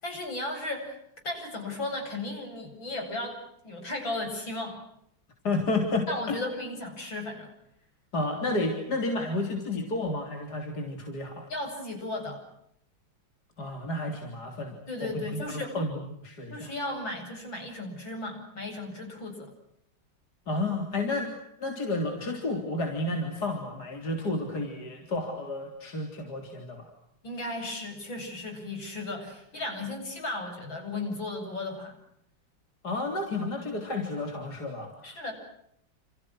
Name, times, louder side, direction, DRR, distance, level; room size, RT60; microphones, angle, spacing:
voice 1, 0.0-1.0 1.2-3.4 3.6-4.8 6.1-7.5 11.5-12.4 14.9-15.8 16.5-19.5 27.2-32.0 35.0-35.3, left 2 dB, 70° left, 4 dB, 8.9 m, -35 dB
voice 2, 5.4-6.4 8.1-11.5 13.6-16.7 20.5-26.9 32.8-35.2, left 2 dB, 50° left, 3 dB, 4.1 m, -31 dB
29.5 x 29.5 x 6.3 m, 0.75 s
omnidirectional pair, 2.2 m